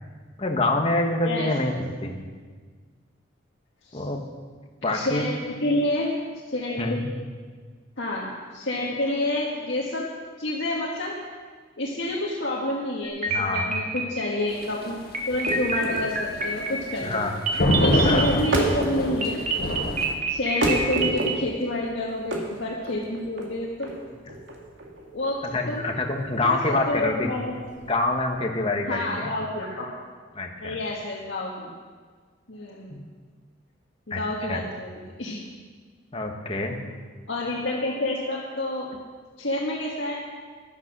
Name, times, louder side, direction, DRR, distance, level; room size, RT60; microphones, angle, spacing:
voice 1, 0.4-1.7 2.0-2.2 3.9-4.2 4.8-5.3 6.8-7.1 13.3-13.7 17.0-17.6 17.9-18.4 25.4-27.3 27.9-29.3 30.3-30.8 34.1-34.2 34.5-34.6 36.1-36.8, left 2 dB, 30° left, 2 dB, 1.4 m, -26 dB
voice 2, 1.2-1.8 3.9-4.0 4.9-5.4 5.6-6.1 6.5-7.0 8.0-10.1 10.4-11.2 11.8-15.0 15.3-17.2 17.8-19.4 20.3-24.0 25.1-25.4 25.7-25.9 26.4-27.6 28.9-29.9 30.6-31.7 32.5-33.0 34.1-35.4 36.7-36.9 37.3-38.9 39.4-40.2, left 1 dB, 70° left, -5 dB, 1.8 m, -29 dB
sound 1, 13.0-14.5 15.1-18.7 19.2-21.4, right 3 dB, 40° right, 1.6 m, -27 dB
sound 2, 14.5-20.1, left 1 dB, 50° left, 1.6 m, -26 dB
sound 3, 15.3-28.2, right 1 dB, 85° right, 2.3 m, -31 dB
12.5 x 11.0 x 6.1 m, 1.5 s
head